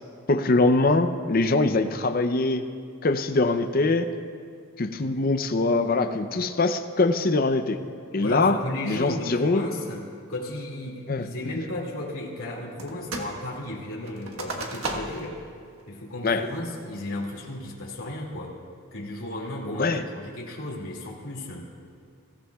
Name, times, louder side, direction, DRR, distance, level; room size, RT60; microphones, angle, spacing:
voice 1, 0.3-2.7 3.0-4.1 4.8-7.8 8.1-8.6 8.8-9.6 11.1-11.3 16.2-16.5 19.8-20.0, left 3 dB, 45° left, 8 dB, 0.6 m, -23 dB
voice 2, 8.2-15.4 15.9-18.5 18.9-21.7, left 1 dB, 85° left, -4 dB, 2.3 m, -34 dB
sound 1, 12.8-13.4 13.6-15.3 15.8-15.9 16.4-16.8 17.3-17.7, right 2 dB, 80° right, 1.4 m, -35 dB
21.5 x 14.0 x 2.4 m, 2.2 s
head